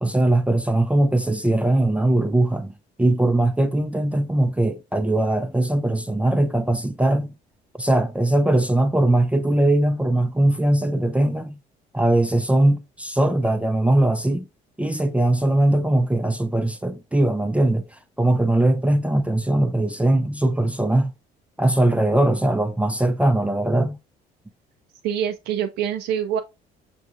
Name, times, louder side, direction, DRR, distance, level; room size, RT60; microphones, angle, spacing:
voice 1, 0.0-2.7 3.0-7.3 7.8-11.5 11.9-14.5 14.8-21.1 21.6-24.0, right 1 dB, 10° right, 0.4 m, -20 dB
voice 2, 25.0-26.4, right 9 dB, 80° right, 0.4 m, -25 dB
6.0 x 2.7 x 2.5 m
cardioid pair, 110°, 17 cm